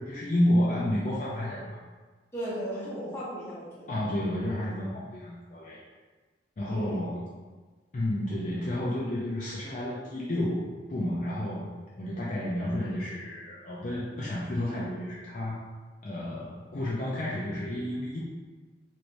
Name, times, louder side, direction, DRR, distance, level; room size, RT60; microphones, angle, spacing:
voice 1, 0.0-1.8 3.9-5.8 6.6-7.3 7.9-11.7 12.0-15.6 16.0-18.2, left 1 dB, 40° left, -6 dB, 0.4 m, -31 dB
voice 2, 2.3-4.0 6.7-7.0, equal, 15° left, -8 dB, 0.8 m, -36 dB
3.1 x 3.0 x 2.6 m, 1.3 s
head